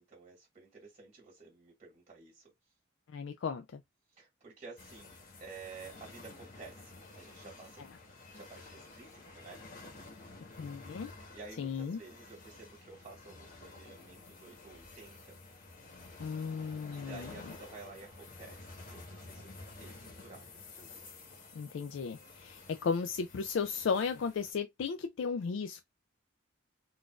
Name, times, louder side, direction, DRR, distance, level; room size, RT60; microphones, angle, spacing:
voice 1, 0.0-2.5 4.1-7.9 8.3-9.6 11.3-15.4 16.9-20.4 20.7-21.0 22.3-22.4, right 4 dB, 35° right, 1.6 m, -52 dB
voice 2, 3.1-3.8 10.6-11.1 11.6-12.0 16.2-17.3 21.5-25.8, left 5 dB, 75° left, 0.3 m, -35 dB
sound 1, 4.8-24.5, left 3 dB, 45° left, 1.0 m, -52 dB
3.8 x 2.4 x 2.3 m
head